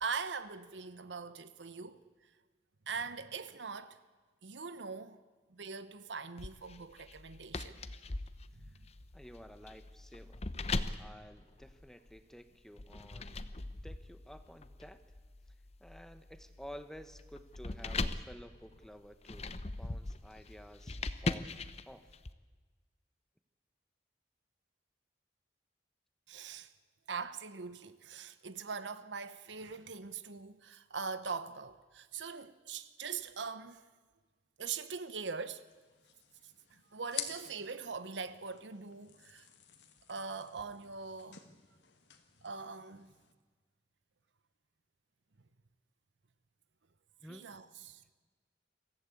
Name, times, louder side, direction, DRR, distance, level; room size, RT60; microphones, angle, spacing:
voice 1, 0.0-2.0 2.9-4.0 4.4-5.2 5.5-7.8 8.5-8.9 26.3-26.7 27.1-33.8 34.6-35.7 36.7-39.5 40.1-41.4 42.4-43.1 47.3-48.0, right 5 dB, 85° right, 1.0 m, -42 dB
sound 1, 6.4-12.2 12.8-22.3, left 3 dB, 35° left, 0.7 m, -41 dB
voice 2, 9.1-10.4 11.0-13.5 13.8-15.0 15.8-21.5 21.9-22.1 47.2-47.5, equal, 5° left, 0.9 m, -52 dB
sound 2, 35.7-43.3, left 9 dB, 80° left, 1.9 m, -49 dB
23.5 x 15.0 x 8.5 m
head